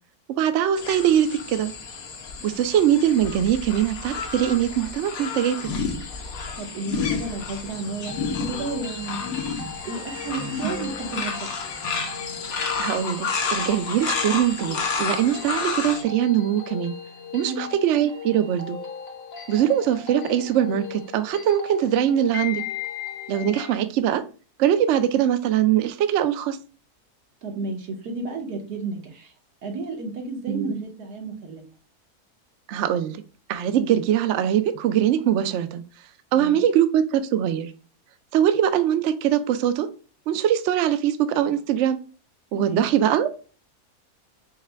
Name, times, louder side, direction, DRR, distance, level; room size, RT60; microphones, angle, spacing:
voice 1, 0.4-1.7 2.4-5.6 10.6-10.9 12.8-16.9 17.3-18.8 19.5-22.6 23.3-24.2 24.6-26.6 30.5-30.8 32.7-33.2 33.5-35.8 36.3-37.7 38.3-39.9 40.3-42.0 42.5-43.4, right 10 dB, 70° right, 10 dB, 0.7 m, -22 dB
sound 1, 0.8-16.0, left 5 dB, 65° left, 1.2 m, -31 dB
voice 2, 6.5-9.2 9.8-11.5 17.5-17.7 27.4-29.3 29.6-31.6 36.3-36.6 42.5-42.9, right 3 dB, 85° right, 2 dB, 1.6 m, -32 dB
sound 2, 7.8-23.8, left 7 dB, 50° left, 1.0 m, -38 dB
5.7 x 2.2 x 3.3 m, 0.36 s
omnidirectional pair, 1.6 m